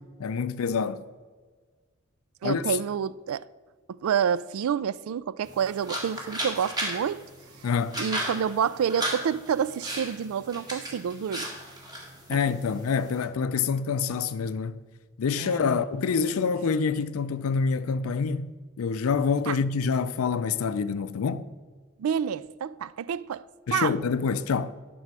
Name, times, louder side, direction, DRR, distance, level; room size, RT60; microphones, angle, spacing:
voice 1, 0.2-1.0 2.4-2.8 7.6-8.0 12.3-14.8 15.2-18.5 18.8-21.5 23.7-24.7, left 5 dB, 85° left, 0.4 m, -26 dB
voice 2, 2.4-3.4 3.9-7.2 8.0-11.5 12.3-12.4 15.4-15.8 19.5-19.6 22.0-23.4 23.7-23.9, right 8 dB, 85° right, 0.3 m, -28 dB
sound 1, 5.4-13.3, right 1 dB, 20° right, 1.7 m, -36 dB
11.0 x 6.2 x 4.7 m
head